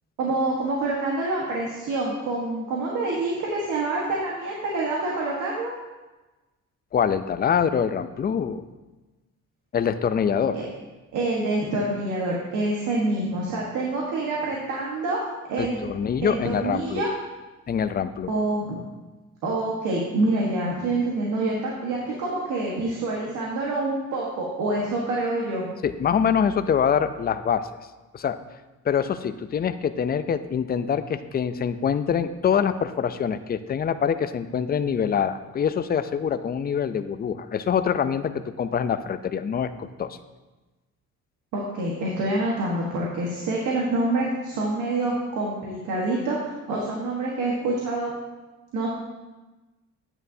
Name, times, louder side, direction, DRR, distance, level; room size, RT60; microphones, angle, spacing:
voice 1, 0.2-5.7 10.5-10.6 11.1-15.2 15.5-15.8 16.2-17.1 18.3-18.8 19.4-25.7 41.5-48.1 48.7-48.9, right 2 dB, 90° right, -3 dB, 1.4 m, -26 dB
voice 2, 6.9-8.7 9.7-10.6 15.6-17.0 17.7-18.3 25.8-27.7 28.1-28.4 28.8-40.2, left 7 dB, 30° left, 11 dB, 0.5 m, -25 dB
8.9 x 8.9 x 2.7 m, 1.1 s
cardioid pair, 90°, 30 cm